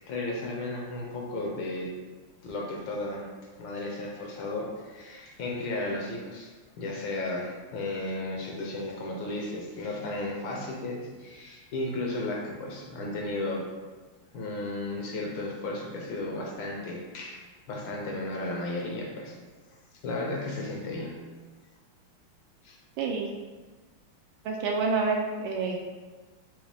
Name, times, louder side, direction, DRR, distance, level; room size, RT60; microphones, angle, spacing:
voice 1, 0.0-1.9 2.4-3.3 3.6-6.5 6.8-13.7 14.3-19.4 20.0-21.1 22.6-22.8, left 2 dB, 70° left, -1 dB, 1.4 m, -34 dB
voice 2, 24.4-25.8, right 4 dB, 75° right, 0 dB, 1.2 m, -28 dB
5.4 x 2.8 x 3.3 m, 1.3 s
omnidirectional pair, 2.3 m